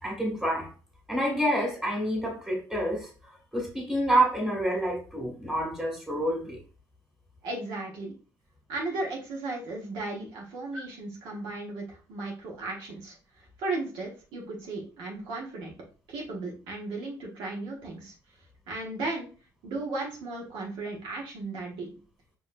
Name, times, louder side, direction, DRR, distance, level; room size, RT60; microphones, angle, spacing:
voice 1, 0.0-0.7 1.1-3.1 3.5-6.6, right 1 dB, 5° right, 2.1 m, -28 dB
voice 2, 7.4-8.1 8.7-15.7 16.1-18.1 18.7-19.3 19.6-21.9, right 2 dB, 75° right, 1.1 m, -35 dB
4.7 x 2.9 x 2.5 m
supercardioid pair, 70°, 8 cm